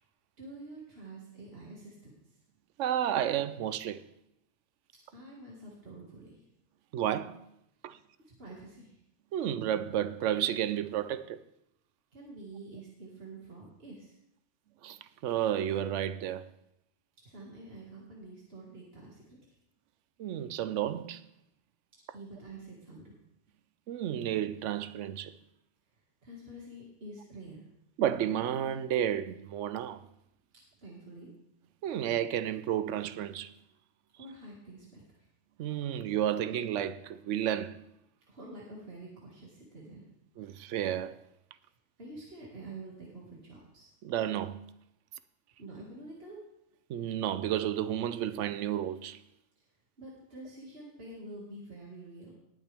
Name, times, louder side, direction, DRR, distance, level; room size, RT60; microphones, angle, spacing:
voice 1, 0.4-2.3 5.1-6.4 8.3-9.0 12.1-14.2 17.2-19.4 22.1-23.2 26.2-27.7 30.8-31.3 34.2-35.3 38.3-40.1 42.0-43.9 45.6-46.4 49.6-49.7 50.0-52.3, right 2 dB, 55° right, 2.3 m, -47 dB
voice 2, 2.8-4.1 6.9-7.5 7.8-8.0 9.3-11.4 14.8-16.5 20.2-21.2 23.9-25.3 28.0-30.1 31.8-33.5 35.6-37.8 40.4-41.1 44.0-44.6 46.9-49.2, right 10 dB, 85° right, 0.9 m, -32 dB
19.0 x 8.7 x 3.5 m
omnidirectional pair, 1.2 m